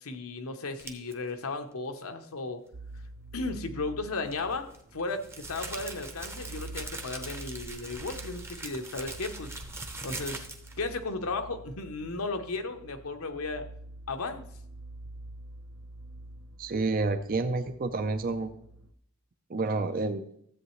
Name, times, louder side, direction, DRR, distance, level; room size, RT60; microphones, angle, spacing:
voice 1, 0.0-2.6 3.3-9.6 10.0-10.5 10.8-13.6 14.1-14.5, left 3 dB, 75° left, 6 dB, 0.9 m, -35 dB
sound 1, 0.8-1.1 4.2-10.8, right 2 dB, 10° right, 0.7 m, -41 dB
sound 2, 2.7-18.9, right 1 dB, 85° right, 0.8 m, -47 dB
voice 2, 16.6-18.5 19.5-20.2, right 3 dB, 40° right, 8 dB, 0.5 m, -29 dB
13.5 x 7.9 x 3.2 m, 0.69 s
head